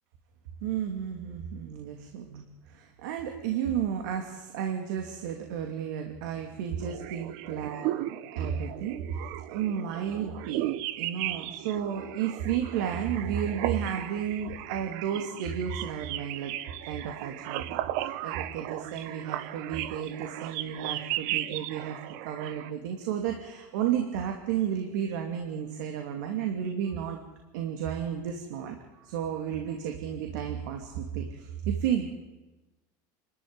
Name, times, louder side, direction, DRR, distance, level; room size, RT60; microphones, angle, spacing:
voice 1, 0.6-9.2 9.5-10.6 11.0-16.5 16.8-22.0 22.2-27.2 27.5-32.1, right 9 dB, 70° right, 3 dB, 2.8 m, -32 dB
sound 1, 6.8-22.7, right 14 dB, 55° right, 1.1 m, -36 dB
27.5 x 13.0 x 9.7 m, 1.1 s
cardioid pair, 180°, 10 cm